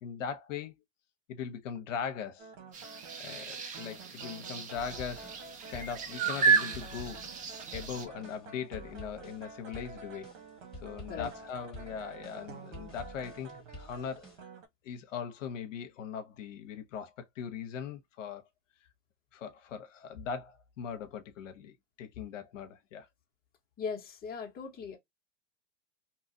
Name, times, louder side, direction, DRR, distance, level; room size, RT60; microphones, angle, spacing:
voice 1, 0.0-0.7 1.3-2.5 3.2-7.2 7.7-10.3 10.8-14.5 14.8-18.4 19.3-23.1, left 7 dB, 80° left, 0.8 m, -40 dB
sound 1, 2.4-14.7, right 4 dB, 80° right, 1.1 m, -50 dB
sound 2, 2.7-8.1, right 6 dB, 20° right, 0.6 m, -32 dB
sound 3, 4.7-14.4, left 1 dB, ahead, 1.5 m, -50 dB
voice 2, 23.8-25.0, left 6 dB, 25° left, 1.0 m, -38 dB
2.8 x 2.4 x 2.6 m
hypercardioid pair, 115°, 37 cm